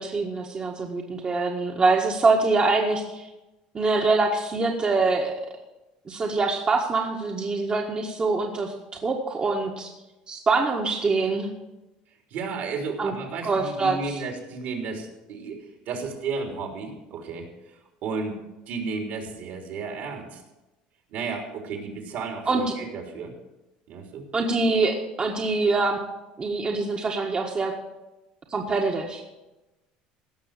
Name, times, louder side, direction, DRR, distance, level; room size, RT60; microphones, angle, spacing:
voice 1, 0.0-3.3 3.7-5.3 6.1-8.7 9.0-9.9 10.3-11.5 13.0-13.1 13.4-14.2 22.5-22.7 24.3-26.0 26.4-27.7 28.5-29.2, right 3 dB, 30° right, 0 dB, 1.6 m, -24 dB
voice 2, 12.3-17.5 18.0-18.4 18.7-20.4 21.1-23.3 23.9-24.3, right 4 dB, 65° right, 2 dB, 3.3 m, -33 dB
17.0 x 6.1 x 7.5 m, 1.0 s
supercardioid pair, 95°, 3 cm